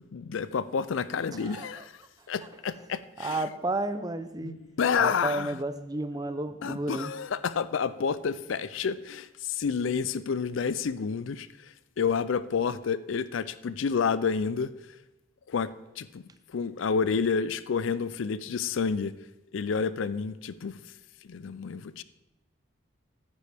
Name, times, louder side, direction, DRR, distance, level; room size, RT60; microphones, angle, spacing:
voice 1, 0.0-1.9 2.3-3.4 4.4-5.6 6.6-14.7 15.5-15.7 16.0-16.2 16.5-19.1 19.5-20.8 21.2-22.0, left 6 dB, 80° left, 16 dB, 0.4 m, -29 dB
voice 2, 1.3-1.8 3.2-4.5 5.0-7.1, right 2 dB, 20° right, 11 dB, 0.5 m, -32 dB
13.5 x 9.8 x 3.5 m, 0.99 s
head